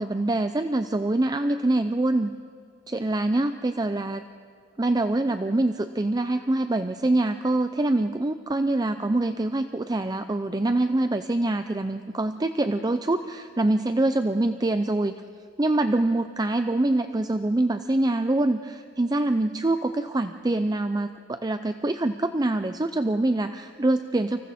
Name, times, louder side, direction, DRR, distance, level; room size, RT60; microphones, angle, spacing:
voice 1, 0.0-2.3 2.9-4.2 4.8-15.1 15.6-24.4, right 2 dB, 20° right, 9 dB, 0.5 m, -25 dB
29.0 x 25.5 x 4.3 m, 2.2 s
head